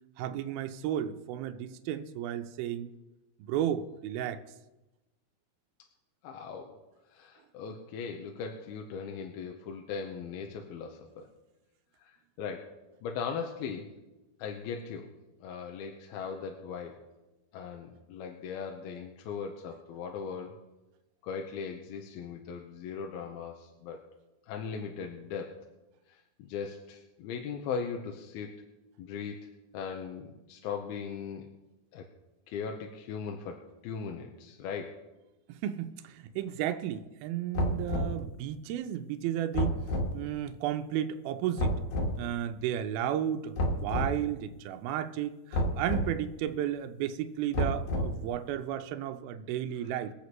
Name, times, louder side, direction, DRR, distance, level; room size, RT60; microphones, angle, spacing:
voice 1, 0.2-2.9 3.5-4.4 35.5-39.8 40.1-41.8 42.2-50.1, right 11 dB, 80° right, 7 dB, 2.5 m, -33 dB
voice 2, 6.2-6.8 7.1-11.3 12.0-13.9 14.4-15.1 15.4-17.0 17.5-20.6 21.2-24.0 24.5-25.6 26.1-28.6 29.0-31.5 31.9-32.1 32.5-35.0, left 6 dB, 90° left, 3 dB, 2.8 m, -39 dB
sound 1, 37.5-38.2 39.5-40.1 41.6-42.2 43.6-44.1 45.5-46.1 47.5-48.3, left 1 dB, 70° left, 3.3 m, -29 dB
24.0 x 8.3 x 3.1 m, 1.0 s
omnidirectional pair, 4.4 m